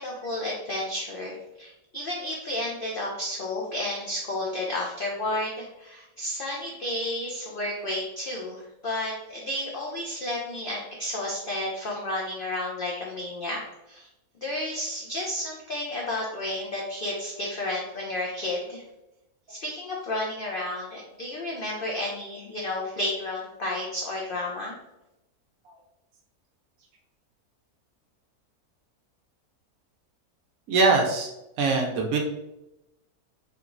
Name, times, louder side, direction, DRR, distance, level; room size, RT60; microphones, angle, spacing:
voice 1, 0.0-13.6 13.9-14.1 14.4-18.8 19.5-24.8, left 1 dB, 75° left, -2 dB, 0.5 m, -32 dB
voice 2, 30.7-31.3 31.6-32.2, right 3 dB, 75° right, 1 dB, 1.1 m, -22 dB
3.3 x 2.9 x 2.5 m, 0.90 s
omnidirectional pair, 1.6 m